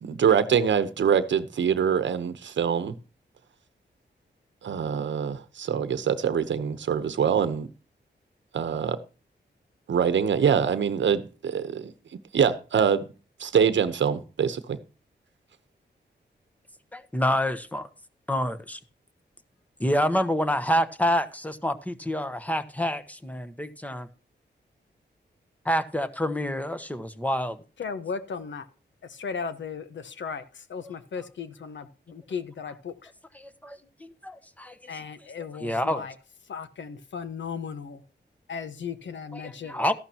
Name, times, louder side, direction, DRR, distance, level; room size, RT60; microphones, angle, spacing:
voice 1, 0.0-2.9 4.6-7.7 8.5-9.0 9.9-11.9 12.3-13.0 13.4-14.8, right 7 dB, 85° right, 1.0 m, -24 dB
voice 2, 16.9-17.9 18.3-18.8 19.8-24.1 25.6-27.6 33.3-34.9 35.6-36.0 39.3-39.9, equal, 10° left, 1.1 m, -27 dB
voice 3, 27.8-28.7 29.0-33.1 34.9-36.1 36.5-38.0 38.5-39.8, left 6 dB, 85° left, 1.3 m, -36 dB
14.0 x 11.5 x 2.9 m
wide cardioid pair, 110°, 19 cm